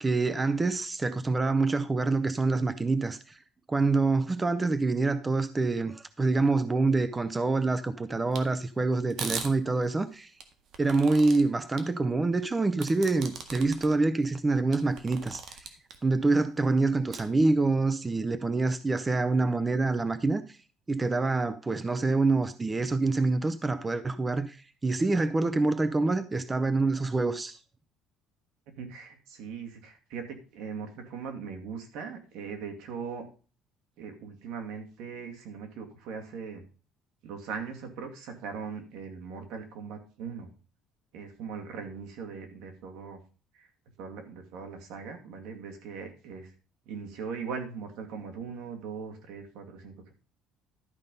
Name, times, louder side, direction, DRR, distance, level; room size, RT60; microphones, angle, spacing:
voice 1, 0.0-3.4 3.7-10.3 10.8-15.7 16.0-20.6 20.9-27.6, right 3 dB, 15° right, 0.5 m, -26 dB
sound 1, 8.3-8.4 9.1-9.5 10.4-11.4 11.8-11.9 12.8-13.9 14.3-14.4 14.7-16.0 17.1-17.2, right 6 dB, 60° right, 1.7 m, -38 dB
voice 2, 28.7-33.3 34.0-36.6 37.2-40.5 41.1-43.2 43.5-43.7 44.0-46.5 46.9-50.1, right 6 dB, 80° right, 2.3 m, -40 dB
12.0 x 5.3 x 5.4 m
cardioid pair, 135°, 0 cm